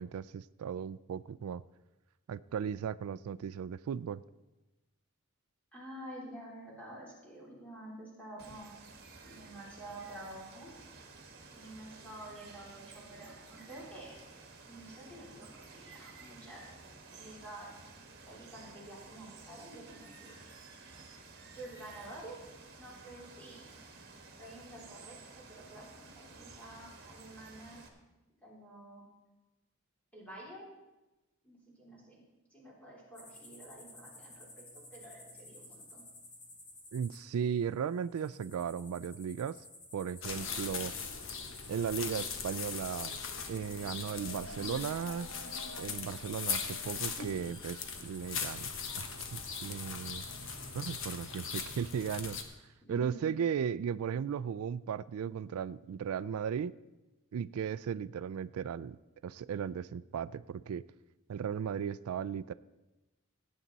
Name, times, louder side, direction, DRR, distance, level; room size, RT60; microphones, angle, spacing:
voice 1, 0.0-1.6 2.3-4.2 36.9-39.6 39.9-40.9 41.7-43.2 43.5-45.3 45.8-48.7 49.0-50.2 50.7-52.4 52.9-56.7 57.3-59.0 59.2-60.8 61.3-62.5, right 7 dB, 90° right, 17 dB, 0.3 m, -36 dB
voice 2, 5.7-8.7 9.2-10.7 11.6-14.1 14.7-16.6 17.1-17.7 18.2-20.4 21.6-22.4 22.8-23.7 24.4-27.8 28.4-29.0 30.1-30.7 31.4-32.2 32.5-34.6 34.9-36.0 52.8-53.3, right 1 dB, 5° left, -6 dB, 3.6 m, -49 dB
Water, 8.4-27.9, right 3 dB, 45° right, 1.7 m, -53 dB
sound 1, 33.1-51.1, left 2 dB, 35° left, 2.5 m, -54 dB
sound 2, 40.2-52.4, left 6 dB, 65° left, 1.1 m, -40 dB
17.0 x 8.7 x 4.0 m, 1.0 s
head